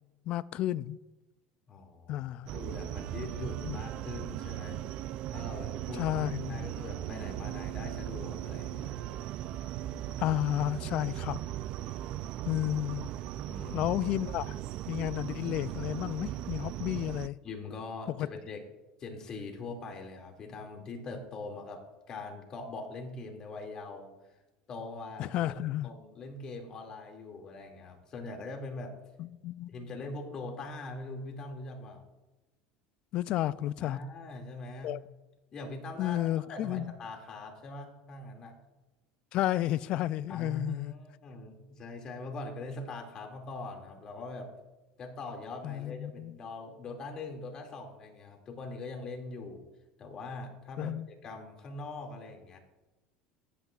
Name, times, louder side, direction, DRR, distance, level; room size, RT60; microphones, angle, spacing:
voice 1, 0.3-1.0 2.1-2.6 3.6-3.8 5.9-6.7 10.2-11.4 12.5-13.1 13.7-14.6 14.9-17.4 18.2-18.3 25.2-25.9 29.2-29.7 33.1-34.0 34.8-35.0 36.0-36.9 39.3-40.9 45.6-46.3 50.8-51.1, left 14 dB, 55° left, 0.4 m, -32 dB
voice 2, 1.7-2.2 2.5-4.8 5.3-6.2 6.5-9.0 13.4-13.9 17.4-18.6 19.0-24.1 24.7-25.6 25.8-28.9 29.7-32.0 33.8-34.9 35.5-36.2 36.5-38.6 40.3-44.5 45.0-49.6 50.0-52.6, left 3 dB, 40° left, 2.4 m, -42 dB
sound 1, 2.5-17.3, right 12 dB, 55° right, 0.3 m, -38 dB
14.5 x 12.0 x 2.4 m
supercardioid pair, 115°, 2 cm